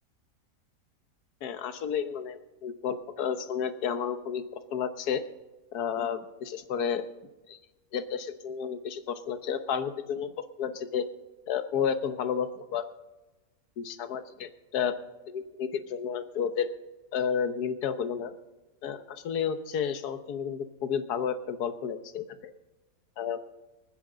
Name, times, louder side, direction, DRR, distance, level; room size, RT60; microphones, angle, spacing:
voice 1, 1.4-4.4 4.7-5.2 5.7-7.0 7.5-7.6 7.9-10.3 10.6-11.0 11.5-12.9 13.8-15.0 15.3-16.7 17.1-18.3 18.8-22.5 23.2-23.4, left 7 dB, 70° left, 10 dB, 1.5 m, -31 dB
26.0 x 9.8 x 3.8 m, 1.1 s
omnidirectional pair, 1.8 m